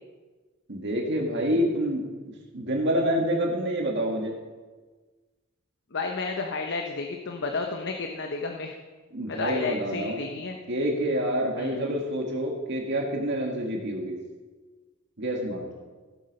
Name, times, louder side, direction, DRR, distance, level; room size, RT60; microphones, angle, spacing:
voice 1, 0.7-2.0 2.5-4.3 9.1-10.2 10.7-14.2 15.2-15.7, equal, 60° right, 0 dB, 1.9 m, -27 dB
voice 2, 5.9-8.8 9.3-10.6 11.6-11.9, left 4 dB, 60° left, 3 dB, 0.9 m, -32 dB
16.0 x 8.1 x 5.4 m, 1.3 s
head